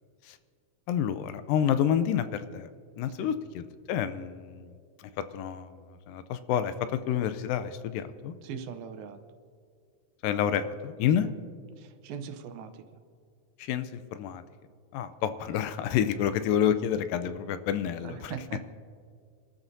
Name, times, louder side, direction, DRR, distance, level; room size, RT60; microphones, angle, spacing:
voice 1, 0.9-2.7 3.0-4.7 5.0-5.7 6.1-8.3 10.2-11.3 13.6-14.4 14.9-18.5, left 9 dB, 80° left, 11 dB, 2.3 m, -29 dB
voice 2, 8.4-9.2 11.2-11.3 11.8-12.7 18.0-18.6, right 7 dB, 85° right, 7 dB, 2.6 m, -40 dB
30.0 x 13.0 x 2.7 m, 2.2 s
omnidirectional pair, 4.1 m